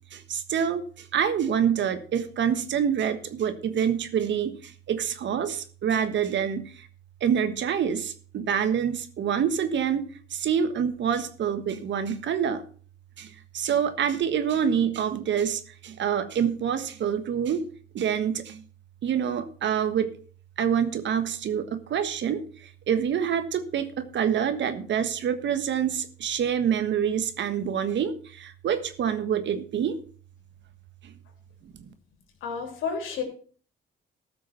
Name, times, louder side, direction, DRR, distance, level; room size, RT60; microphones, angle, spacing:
voice 1, 0.1-6.9 7.2-10.0 10.3-12.6 13.2-17.6 17.9-18.6 19.0-20.1 20.6-30.0 31.0-31.1 31.8-31.9, right 8 dB, 65° right, 10 dB, 1.5 m, -26 dB
voice 2, 32.4-33.2, left 6 dB, 90° left, 4 dB, 3.2 m, -30 dB
14.0 x 6.2 x 5.8 m, 0.43 s
cardioid pair, 90°, 20 cm